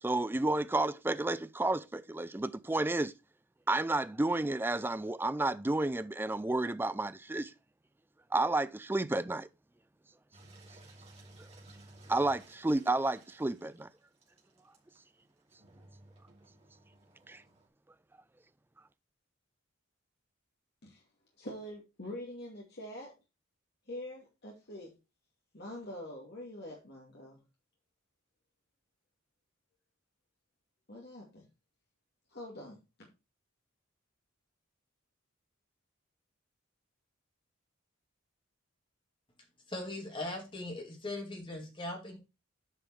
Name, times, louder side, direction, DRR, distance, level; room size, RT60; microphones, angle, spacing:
voice 1, 0.0-3.1 3.7-7.5 8.3-9.5 12.1-13.9 17.3-17.4, right 2 dB, 10° right, 0.3 m, -31 dB
Engine, 10.3-17.7, right 2 dB, 30° right, 2.8 m, -57 dB
voice 2, 21.4-23.1 23.9-24.9 25.5-27.4 30.9-31.5 32.3-33.1, left 1 dB, 50° left, 2.3 m, -45 dB
voice 3, 39.7-42.2, left 2 dB, 25° left, 2.5 m, -39 dB
8.9 x 5.1 x 4.7 m
head